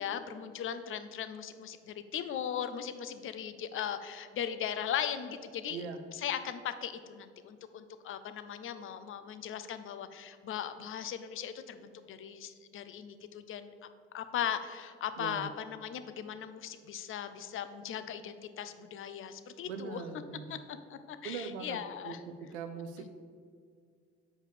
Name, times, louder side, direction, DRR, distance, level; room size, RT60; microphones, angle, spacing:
voice 1, 0.0-5.8 6.1-13.7 14.1-20.0 20.5-22.2 23.0-23.1, left 9 dB, 40° left, 11 dB, 0.6 m, -38 dB
voice 2, 15.2-15.5 19.6-20.6 21.2-21.8 22.0-22.2 22.5-23.1, right 5 dB, 80° right, 7 dB, 0.6 m, -40 dB
6.5 x 4.8 x 6.7 m, 2.1 s
figure-of-eight pair, 55°, 33 cm